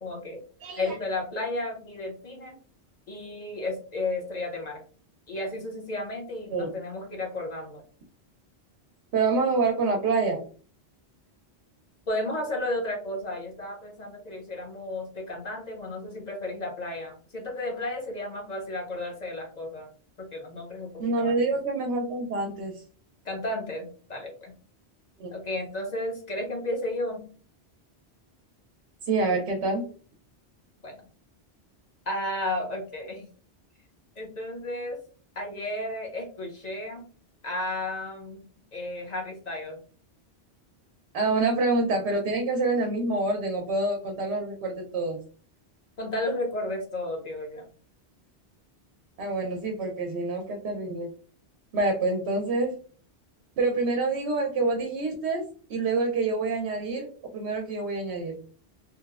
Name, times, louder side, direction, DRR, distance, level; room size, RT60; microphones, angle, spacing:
voice 1, 0.0-0.4 0.8-2.6 3.1-4.8 5.3-7.8 12.1-19.9 20.2-20.9 21.2-21.3 23.2-24.5 25.3-27.3 30.8-31.0 32.1-33.3 34.2-35.0 35.4-37.0 37.4-38.4 38.7-39.8 46.0-47.7, left 1 dB, 45° left, 1 dB, 0.6 m, -33 dB
voice 2, 0.6-1.0 6.5-6.7 9.1-10.4 21.0-22.8 25.2-25.3 29.0-29.9 41.1-45.2 49.2-51.1 51.7-52.8 53.6-58.4, right 3 dB, 80° right, 2 dB, 0.8 m, -27 dB
2.8 x 2.0 x 2.3 m, 0.40 s
omnidirectional pair, 1.1 m